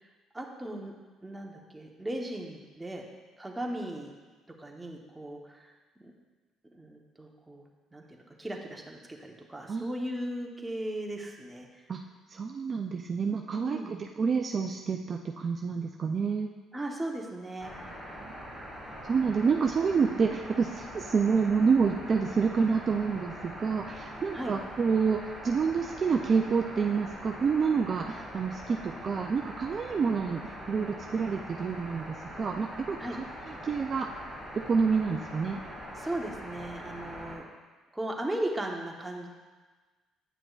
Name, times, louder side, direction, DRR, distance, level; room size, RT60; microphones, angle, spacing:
voice 1, 0.3-0.9 1.2-3.0 3.4-4.1 4.6-6.1 6.7-7.6 7.9-11.7 13.5-13.9 16.7-18.0 24.3-24.5 33.0-33.2 36.0-37.4 37.9-39.3, right 1 dB, 10° right, 0 dB, 1.0 m, -37 dB
voice 2, 12.3-16.5 18.3-18.4 19.0-34.1 34.5-35.6, right 5 dB, 40° right, 3 dB, 0.4 m, -28 dB
sound 1, 17.6-37.4, equal, 15° left, 2.2 m, -43 dB
9.1 x 6.0 x 2.4 m, 1.3 s
cardioid pair, 90°, 0 cm